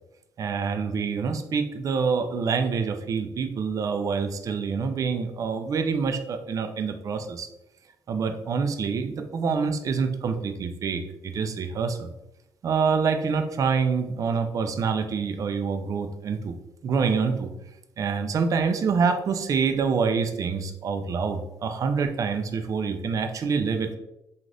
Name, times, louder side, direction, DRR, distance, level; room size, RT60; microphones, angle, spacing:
voice 1, 0.4-7.5 8.1-12.1 12.6-16.5 16.8-17.5 18.0-24.0, right 5 dB, 45° right, 7 dB, 0.4 m, -26 dB
2.5 x 2.4 x 3.2 m, 0.88 s
cardioid pair, 95°, 8 cm